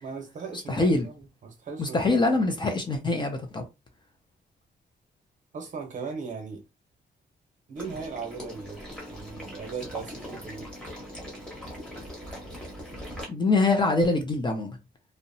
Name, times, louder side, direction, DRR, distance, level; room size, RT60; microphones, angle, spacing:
voice 1, 0.0-2.1 5.5-6.6 7.7-8.8 9.1-10.7, right 5 dB, 45° right, 0.8 m, -38 dB
voice 2, 0.7-1.1 1.8-3.7 13.3-14.8, left 2 dB, 25° left, 0.4 m, -24 dB
Water / Liquid, 7.8-13.2, equal, 5° left, 0.9 m, -41 dB
2.7 x 2.0 x 2.6 m
wide cardioid pair, 180°, 18 cm